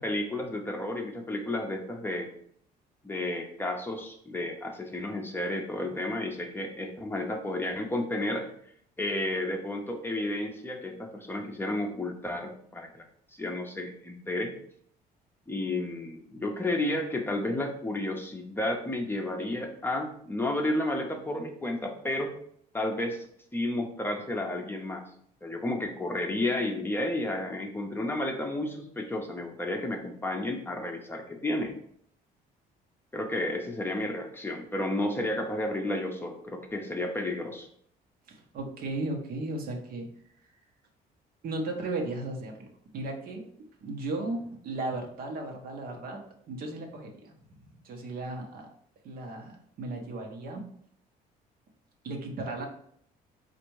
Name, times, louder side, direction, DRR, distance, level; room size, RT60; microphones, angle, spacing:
voice 1, 0.0-2.3 3.0-8.5 9.0-13.0 13.4-14.5 15.5-22.3 22.7-23.3 23.5-25.0 25.4-31.8 33.1-37.7, left 1 dB, 10° left, 2 dB, 0.7 m, -32 dB
voice 2, 38.3-40.1 41.4-43.5 43.8-46.2 46.5-48.7 49.0-50.6 52.0-52.7, right 2 dB, 60° right, 2 dB, 1.1 m, -36 dB
4.2 x 2.6 x 4.6 m, 0.64 s
cardioid pair, 110°, 17 cm